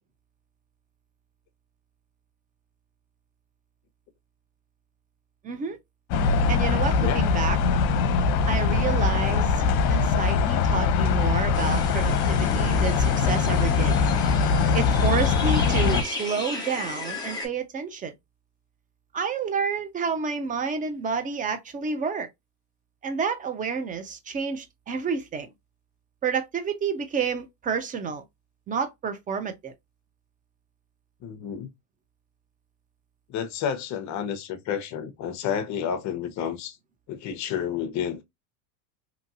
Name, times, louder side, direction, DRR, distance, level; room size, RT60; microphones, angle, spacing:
voice 1, 5.4-5.8 6.5-7.6 8.5-9.6 9.9-13.9 14.7-18.1 19.1-22.3 23.0-25.5 26.2-28.2 28.7-29.7, right 6 dB, 20° right, 0.4 m, -29 dB
sound 1, 6.1-16.0, left 5 dB, 70° left, 0.7 m, -22 dB
sound 2, 11.5-17.5, left 2 dB, 10° left, 1.1 m, -35 dB
voice 2, 31.2-31.7 33.3-36.8 37.1-38.2, left 8 dB, 35° left, 0.7 m, -30 dB
2.8 x 2.5 x 2.6 m
hypercardioid pair, 95°, 48 cm